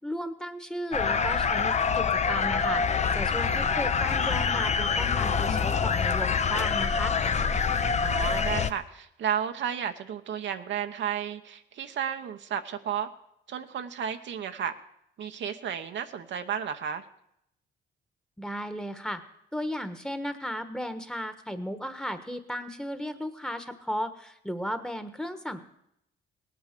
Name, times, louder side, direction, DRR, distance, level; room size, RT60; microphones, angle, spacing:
voice 1, 0.0-7.2 18.4-19.2 19.5-25.6, equal, 5° left, 10 dB, 1.3 m, -35 dB
sound 1, 0.9-8.7, left 6 dB, 35° left, 0.8 m, -26 dB
voice 2, 8.0-13.1 13.5-14.7 15.2-17.0, right 8 dB, 65° right, 7 dB, 1.0 m, -33 dB
18.0 x 8.6 x 6.8 m, 0.77 s
cardioid pair, 90°, 20 cm